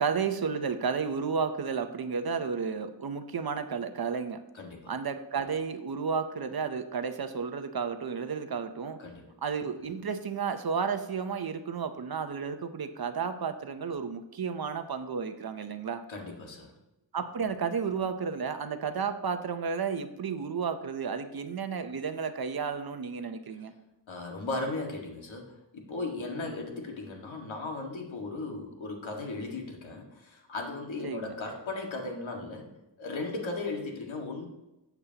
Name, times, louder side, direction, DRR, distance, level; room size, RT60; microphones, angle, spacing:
voice 1, 0.0-4.4 4.9-9.0 9.4-16.0 17.1-23.7 26.4-26.6 31.0-31.4, right 6 dB, 50° right, 9 dB, 0.7 m, -32 dB
voice 2, 4.5-4.9 9.0-9.3 16.1-16.7 24.1-32.7 33.0-34.5, left 3 dB, 75° left, 1 dB, 1.9 m, -37 dB
13.0 x 8.2 x 2.9 m, 0.98 s
wide cardioid pair, 155°, 46 cm